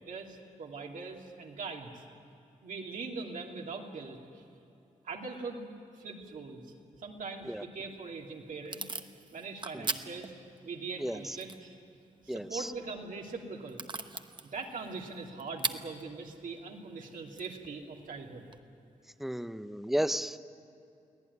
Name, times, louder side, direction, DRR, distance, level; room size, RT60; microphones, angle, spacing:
voice 1, 0.0-2.0 2.6-4.2 5.0-5.7 6.0-6.7 7.0-8.9 9.3-10.3 10.6-11.7 12.2-13.8 14.5-18.5, right 4 dB, 75° right, 1 dB, 2.8 m, -41 dB
Packing tape duct tape / Tearing, 7.8-18.6, right 4 dB, 35° right, 1.0 m, -43 dB
voice 2, 19.2-20.4, equal, ahead, 12 dB, 0.7 m, -32 dB
23.5 x 17.0 x 9.6 m, 2.7 s
wide cardioid pair, 115°, 14 cm